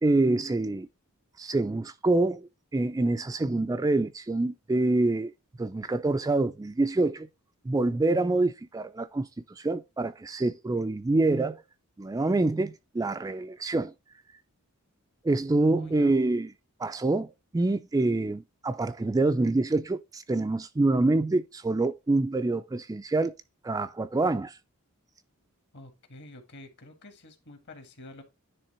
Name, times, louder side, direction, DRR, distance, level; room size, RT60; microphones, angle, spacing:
voice 1, 0.0-0.9 1.4-5.3 5.6-7.3 7.7-11.6 12.0-13.9 15.2-16.5 16.8-23.3 23.6-24.6, right 2 dB, 15° right, 0.3 m, -26 dB
voice 2, 15.6-16.1 25.7-28.2, left 2 dB, 55° left, 1.7 m, -48 dB
10.0 x 3.4 x 4.3 m
head